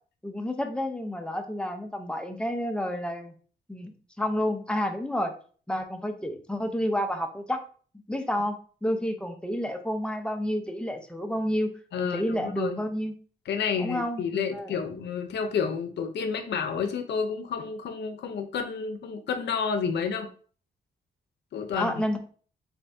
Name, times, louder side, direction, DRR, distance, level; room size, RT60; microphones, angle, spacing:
voice 1, 0.2-3.3 3.7-3.9 4.2-5.3 5.7-7.6 8.1-8.6 8.8-11.7 12.0-13.1 13.8-14.8 21.8-22.2, equal, 5° left, 5 dB, 0.5 m, -30 dB
voice 2, 11.9-12.8 13.5-20.3 21.5-22.1, left 6 dB, 70° left, 8 dB, 0.6 m, -30 dB
4.2 x 2.6 x 3.4 m, 0.43 s
wide cardioid pair, 130°, 18 cm